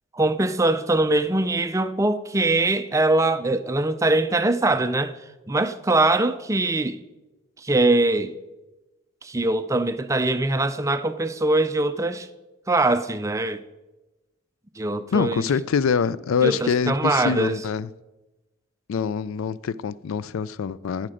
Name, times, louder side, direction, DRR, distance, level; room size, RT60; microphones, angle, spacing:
voice 1, 0.1-5.1 5.5-7.0 7.6-8.3 9.2-12.3 12.7-13.6 14.8-15.4 16.4-17.6, right 2 dB, 15° right, 0.4 m, -22 dB
voice 2, 15.1-17.9 18.9-21.1, left 6 dB, 85° left, 0.4 m, -24 dB
11.5 x 8.7 x 5.0 m
head